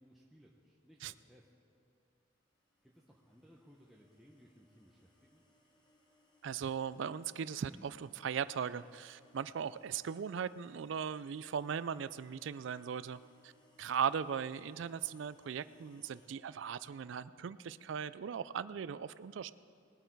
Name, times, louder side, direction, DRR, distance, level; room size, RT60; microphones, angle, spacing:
voice 1, 0.0-1.5 2.8-5.4, equal, ahead, -3 dB, 0.8 m, -62 dB
sound 1, 2.5-16.4, equal, 20° left, 1.2 m, -69 dB
voice 2, 6.4-13.5 13.8-19.5, right 7 dB, 65° right, 16 dB, 0.4 m, -38 dB
20.5 x 8.0 x 4.6 m, 2.4 s
head